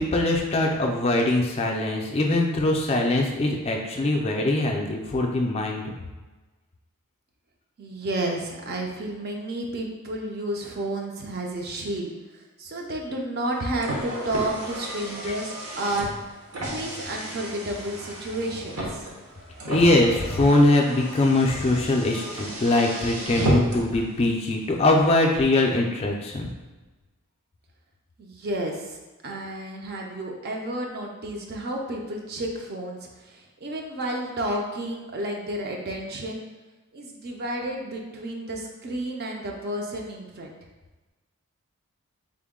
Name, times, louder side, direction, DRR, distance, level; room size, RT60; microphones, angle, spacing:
voice 1, 0.0-5.8 19.7-26.5, left 2 dB, 25° left, 1 dB, 0.3 m, -22 dB
voice 2, 7.8-19.1 28.2-36.4 36.9-40.6, right 1 dB, 45° right, 1 dB, 0.4 m, -31 dB
Car, 13.4-24.0, right 1 dB, 70° right, 0.8 m, -33 dB
3.7 x 2.1 x 3.5 m, 1.2 s
head